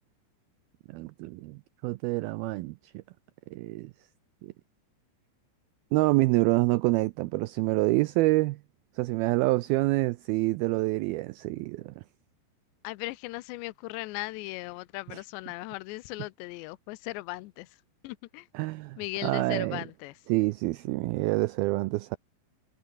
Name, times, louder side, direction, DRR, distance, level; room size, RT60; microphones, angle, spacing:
voice 1, 0.9-3.0 3.5-3.9 4.4-4.5 5.9-8.6 9.0-11.9 18.5-19.8 20.3-22.2, right 20 dB, 85° right, 2.1 m, -27 dB
voice 2, 12.8-17.8 18.0-18.5 19.0-20.2, left 21 dB, 85° left, 3.0 m, -38 dB
omnidirectional pair, 5.0 m